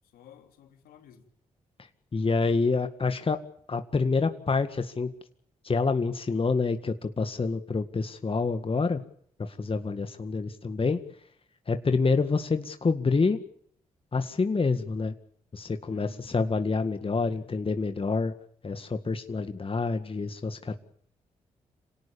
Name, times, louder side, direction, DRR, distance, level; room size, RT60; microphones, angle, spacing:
voice 1, 0.1-1.3 15.9-16.4 17.0-17.6, left 9 dB, 80° left, 5 dB, 3.4 m, -55 dB
voice 2, 2.1-3.4 3.7-5.1 5.6-9.0 9.4-11.0 11.7-13.4 14.1-15.1 15.5-18.3 18.6-20.8, left 4 dB, 40° left, 8 dB, 1.9 m, -27 dB
27.0 x 18.0 x 7.2 m, 0.64 s
hypercardioid pair, 45°, 15 cm